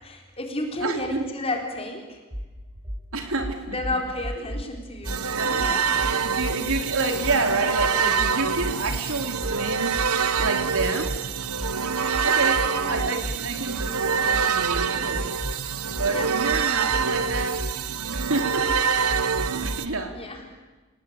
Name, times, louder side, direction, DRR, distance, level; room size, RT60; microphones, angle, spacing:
voice 1, 0.0-2.2 3.7-5.9 12.7-13.0 16.1-16.3 20.1-20.4, left 2 dB, 25° left, 2 dB, 4.2 m, -32 dB
voice 2, 0.8-1.3 3.1-3.8 5.3-10.0 10.4-11.2 12.2-15.2 15.9-17.7 18.1-18.7 19.5-20.2, right 3 dB, 70° right, 5 dB, 3.4 m, -29 dB
sound 1, 2.3-2.5 2.8-3.0 3.4-4.7 5.0-5.2 5.6-6.8 7.2-7.4 7.8-9.0 9.4-13.4 13.7-19.7, equal, 30° right, 7.1 m, -33 dB
sound 2, 5.1-19.9, right 6 dB, 85° right, 1.1 m, -25 dB
27.5 x 19.0 x 8.9 m, 1.2 s
head